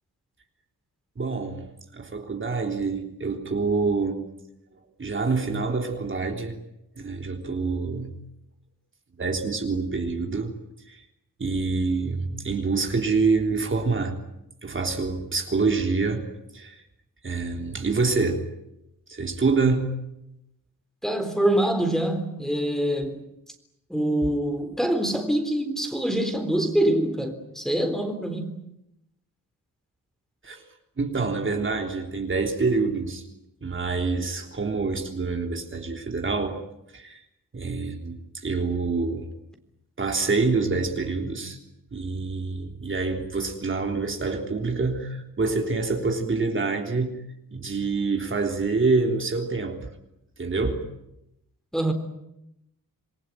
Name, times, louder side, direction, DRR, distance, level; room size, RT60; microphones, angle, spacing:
voice 1, 1.2-1.7 1.9-4.3 5.0-6.6 7.0-8.2 9.2-10.5 10.9-11.0 11.4-14.2 14.6-16.8 17.2-18.5 19.1-20.0 30.4-30.6 31.0-33.2 33.6-36.6 36.9-37.2 37.5-39.3 40.0-41.6 41.9-47.2 47.5-49.9 50.4-50.8, right 4 dB, 35° right, 3.5 m, -26 dB
voice 2, 21.0-23.2 23.9-28.6 51.7-51.9, right 1 dB, ahead, 3.7 m, -25 dB
28.0 x 21.5 x 9.3 m
wide cardioid pair, 140°, 33 cm